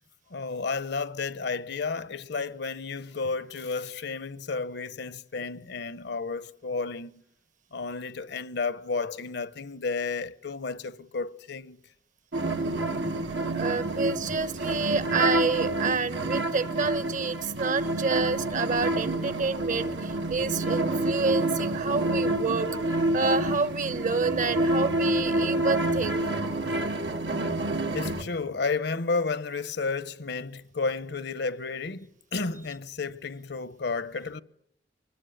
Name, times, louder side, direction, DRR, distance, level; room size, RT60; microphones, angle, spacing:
voice 1, 0.3-7.2 7.7-11.8 27.9-34.4, left 4 dB, 65° left, 1.0 m, -32 dB
sound 1, 12.3-28.2, right 1 dB, 80° right, 2.6 m, -28 dB
voice 2, 13.5-26.3, right 4 dB, 45° right, 1.3 m, -29 dB
25.0 x 20.5 x 9.5 m
head